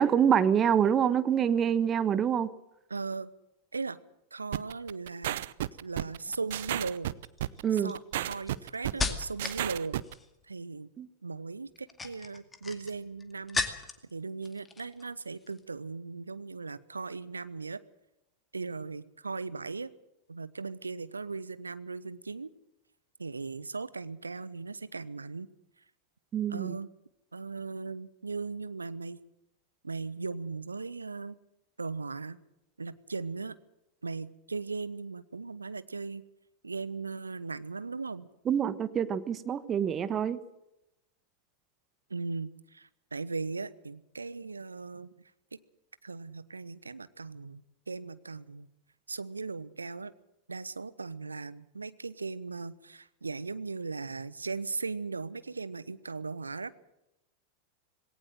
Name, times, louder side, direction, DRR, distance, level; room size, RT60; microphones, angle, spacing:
voice 1, 0.0-2.5 7.6-7.9 11.0-11.1 26.3-26.7 38.5-40.4, right 8 dB, 25° right, 15 dB, 1.3 m, -26 dB
voice 2, 2.9-3.3 3.7-4.0 4.3-5.4 5.8-7.1 7.7-10.0 10.5-10.9 11.2-13.7 14.1-17.8 18.5-19.9 20.3-22.5 23.2-25.5 26.5-26.9 27.3-29.2 29.8-31.4 31.8-32.4 32.8-33.6 34.0-36.2 36.6-38.3 42.1-45.1 45.5-45.6 46.0-48.7 49.1-50.1 50.5-56.8, right 4 dB, 80° right, 17 dB, 0.9 m, -38 dB
sound 1, 4.5-10.1, right 14 dB, 55° right, 0.7 m, -33 dB
sound 2, 6.2-6.5 7.2-9.6 9.9-10.4 11.7-14.1 14.4-15.1 15.4-15.6, left 4 dB, 15° left, 2.2 m, -36 dB
19.5 x 18.0 x 7.6 m, 0.87 s
figure-of-eight pair, 90°, 0 cm